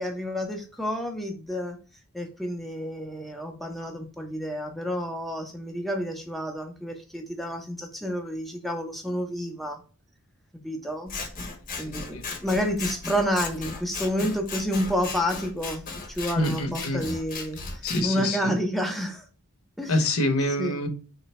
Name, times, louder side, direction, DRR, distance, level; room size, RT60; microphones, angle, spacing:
voice 1, 0.0-1.8 2.1-9.8 10.6-11.1 11.8-19.2 19.8-20.1 20.6-20.8, equal, ahead, 0.5 m, -30 dB
Scissors, 11.1-18.0, left 4 dB, 40° left, 0.8 m, -36 dB
voice 2, 11.9-12.2 16.4-17.0 17.8-18.6 19.9-20.9, left 1 dB, 70° left, 0.7 m, -26 dB
3.8 x 2.2 x 4.0 m
head